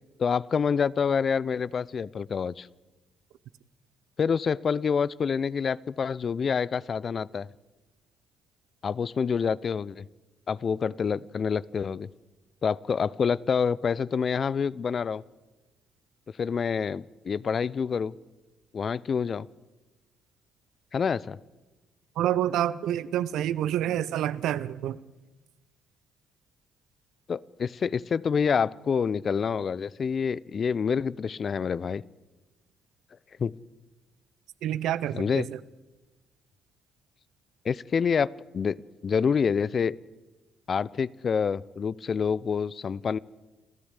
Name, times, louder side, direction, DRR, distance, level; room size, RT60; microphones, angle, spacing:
voice 1, 0.2-2.7 4.2-7.5 8.8-10.0 10.5-12.1 12.6-15.2 16.4-18.1 18.7-19.5 20.9-21.4 27.3-32.0 33.4-33.5 35.1-35.5 37.6-39.9 40.7-43.2, left 6 dB, 50° left, 21 dB, 0.6 m, -27 dB
voice 2, 22.2-25.0 34.6-35.6, right 11 dB, 70° right, 17 dB, 0.8 m, -28 dB
28.0 x 13.5 x 8.2 m, 1.2 s
hypercardioid pair, 50°, 0 cm